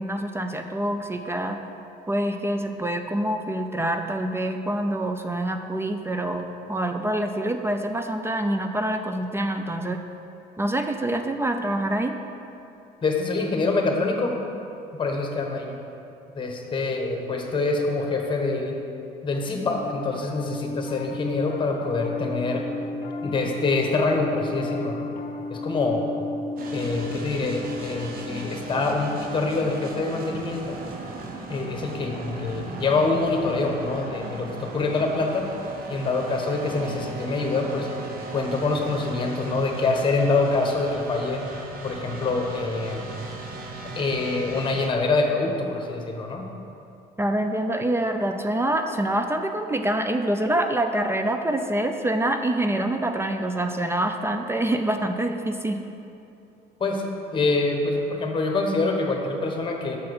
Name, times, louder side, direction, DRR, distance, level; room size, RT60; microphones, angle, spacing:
voice 1, 0.0-1.6 2.1-10.0 10.6-12.1 47.2-55.8, right 1 dB, 15° right, 6 dB, 0.4 m, -26 dB
voice 2, 13.0-14.4 15.0-15.7 16.3-18.7 19.2-22.6 23.2-25.1 25.5-26.0 26.7-30.8 31.5-35.4 35.9-37.9 38.3-41.4 41.8-43.0 43.9-46.5 56.8-60.0, left 3 dB, 30° left, 2 dB, 1.1 m, -25 dB
Piano, 19.3-30.8, left 2 dB, 65° left, 0.7 m, -35 dB
sound 1, 26.6-44.9, right 3 dB, 60° right, 1.0 m, -37 dB
7.1 x 4.7 x 6.3 m, 2.9 s
cardioid pair, 110°, 17 cm